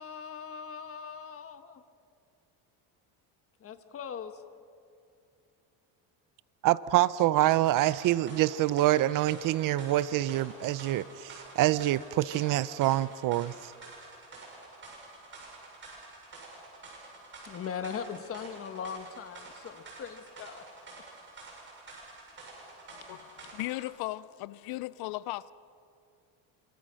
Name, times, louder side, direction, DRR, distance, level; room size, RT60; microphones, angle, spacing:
voice 1, 0.0-1.8 3.6-4.4 17.4-20.6, left 7 dB, 35° left, 1.3 m, -40 dB
voice 2, 6.6-13.7, right 15 dB, 50° right, 0.5 m, -26 dB
sound 1, 7.8-23.9, right 3 dB, 30° right, 7.8 m, -49 dB
voice 3, 22.9-25.5, left 17 dB, 65° left, 0.6 m, -37 dB
27.0 x 25.0 x 6.3 m
cardioid pair, 150°, 41 cm